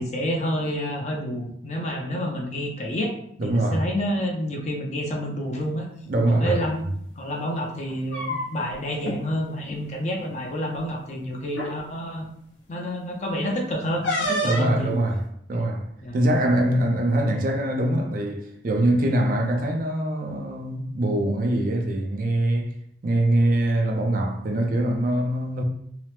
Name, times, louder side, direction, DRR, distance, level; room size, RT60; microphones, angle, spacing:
voice 1, 0.0-3.1 3.4-5.9 6.3-6.8 7.2-12.3 12.7-15.0 15.5-15.7 16.0-16.2, equal, 40° left, 0.5 m, -29 dB
voice 2, 3.4-3.9 6.1-6.5 14.4-15.2 15.5-22.8 23.0-25.6, right 1 dB, 50° right, 0.4 m, -23 dB
sound 1, 6.3-6.6 7.8-8.7 9.0-9.2 9.6-9.8 10.8-10.9 11.5-11.8 14.0-14.8, equal, 85° left, 0.8 m, -28 dB
2.8 x 2.0 x 3.2 m
head